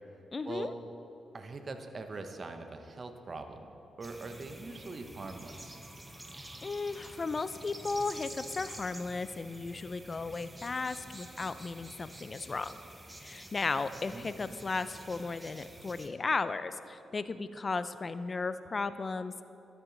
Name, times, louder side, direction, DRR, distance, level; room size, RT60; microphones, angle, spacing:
voice 1, 0.3-0.7 6.6-12.8 13.2-19.3, left 4 dB, 40° left, 13 dB, 0.4 m, -35 dB
voice 2, 1.3-3.7 4.0-5.8 14.1-14.4, right 3 dB, 45° right, 7 dB, 0.8 m, -42 dB
sound 1, 4.0-16.1, right 1 dB, 15° right, 0.9 m, -49 dB
13.0 x 6.0 x 3.9 m, 2.8 s
supercardioid pair, 55°, 0 cm